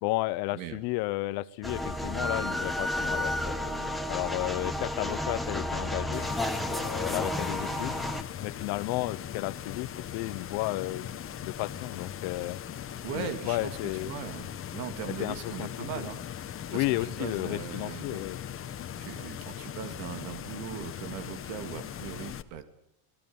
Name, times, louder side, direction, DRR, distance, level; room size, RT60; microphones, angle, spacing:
voice 1, 0.0-6.2 6.7-8.0 8.4-11.1 11.4-12.6 13.1-14.1 15.2-15.7 16.0-16.1 16.7-18.4, left 19 dB, 65° left, 15 dB, 1.1 m, -33 dB
sound 1, 1.6-8.2, left 1 dB, ahead, 1.7 m, -32 dB
sound 2, 6.1-22.4, left 9 dB, 30° left, 1.4 m, -40 dB
voice 2, 13.0-13.8 14.0-18.2 19.0-22.6, right 8 dB, 85° right, 9 dB, 3.1 m, -39 dB
27.0 x 20.0 x 7.2 m, 0.74 s
cardioid pair, 145°, 42 cm